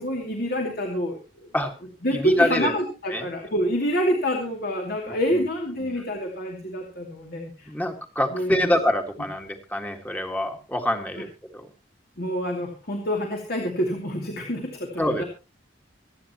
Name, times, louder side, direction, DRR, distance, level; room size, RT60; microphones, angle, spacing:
voice 1, 0.0-1.5 2.0-7.7 8.3-8.7 12.2-15.2, equal, 60° left, 1 dB, 2.5 m, -27 dB
voice 2, 2.1-2.8 3.1-3.3 5.1-5.5 5.8-5.9 7.7-11.7 15.0-15.2, left 1 dB, 10° left, 4 dB, 1.8 m, -26 dB
26.0 x 9.5 x 3.0 m, 0.29 s
head